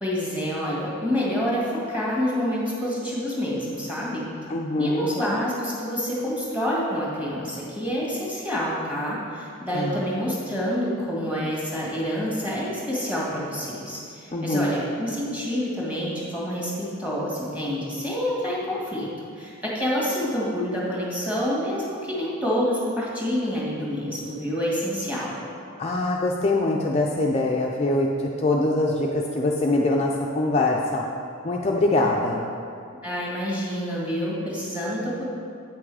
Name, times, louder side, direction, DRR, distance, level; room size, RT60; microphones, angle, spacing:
voice 1, 0.0-4.3 4.8-19.1 19.3-25.4 33.0-35.2, equal, 5° right, -6 dB, 1.9 m, -27 dB
voice 2, 4.5-5.2 9.7-10.1 14.3-14.7 25.8-31.0 31.4-32.5, left 2 dB, 30° left, -2 dB, 0.5 m, -23 dB
8.4 x 6.1 x 4.8 m, 2.5 s
head